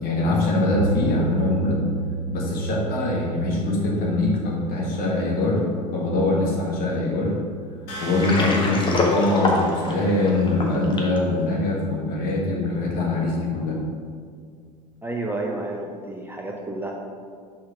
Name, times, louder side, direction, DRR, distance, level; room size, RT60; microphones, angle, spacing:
voice 1, 0.0-1.8 2.3-5.6 5.9-7.4 8.0-13.8, left 2 dB, 45° left, -3 dB, 1.6 m, -23 dB
sound 1, 0.7-10.8, right 6 dB, 85° right, 0.6 m, -34 dB
sound 2, 7.9-10.8, right 2 dB, 60° left, 1.6 m, -39 dB
Water, 8.0-11.2, left 2 dB, 20° left, 1.0 m, -24 dB
voice 2, 15.0-16.9, right 2 dB, 10° right, 0 dB, 0.6 m, -30 dB
5.1 x 4.3 x 4.9 m, 2.1 s
figure-of-eight pair, 75°, 21 cm